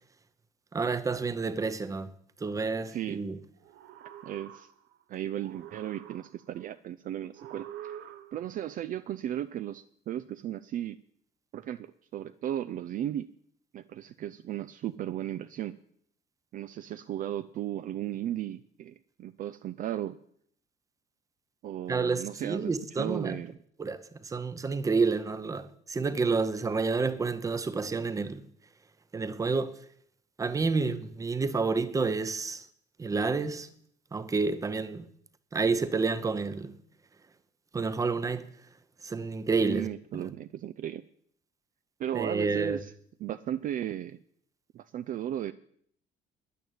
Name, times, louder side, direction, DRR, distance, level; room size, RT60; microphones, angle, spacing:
voice 1, 0.7-2.1 2.4-3.4 21.9-23.4 23.8-28.4 29.1-29.8 30.4-32.7 33.0-33.7 34.1-35.1 35.5-36.7 37.7-38.5 39.0-39.9 40.1-40.3 42.1-42.8, right 4 dB, 15° right, 0.8 m, -29 dB
voice 2, 2.9-3.2 4.2-4.7 5.1-8.0 8.3-11.0 11.5-13.3 13.7-15.8 16.5-20.2 21.6-23.6 39.6-41.0 42.0-42.9 43.2-44.2 44.7-45.5, right 11 dB, 45° right, 0.5 m, -35 dB
sound 1, 3.6-5.0 5.4-6.6 7.3-8.6, right 11 dB, 75° right, 1.1 m, -46 dB
10.5 x 9.3 x 8.7 m
cardioid pair, 165°, 19 cm